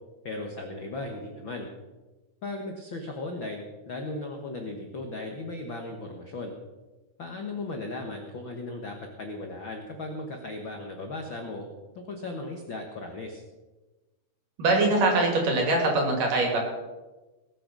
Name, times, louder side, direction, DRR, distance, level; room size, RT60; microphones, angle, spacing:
voice 1, 0.2-1.7 2.4-6.5 7.2-11.7 11.9-13.4, left 2 dB, 85° left, 3 dB, 1.0 m, -36 dB
voice 2, 14.6-16.6, right 2 dB, 55° right, 1 dB, 4.4 m, -23 dB
19.5 x 8.0 x 6.2 m, 1.2 s
omnidirectional pair, 4.5 m